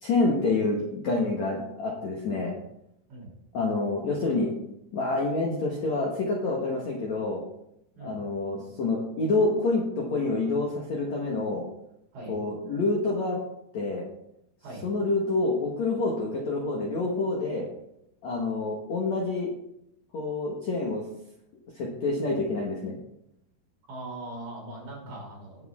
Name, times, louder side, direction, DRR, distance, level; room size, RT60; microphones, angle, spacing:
voice 1, 0.0-2.6 3.5-4.5 4.9-7.4 8.0-11.6 12.3-13.4 13.7-14.1 14.8-17.7 18.2-19.5 20.1-21.0 21.8-23.0, left 3 dB, 55° left, -2 dB, 2.2 m, -27 dB
voice 2, 23.9-25.7, right 2 dB, 45° right, -2 dB, 4.4 m, -40 dB
18.5 x 7.6 x 3.7 m, 0.79 s
omnidirectional pair, 4.9 m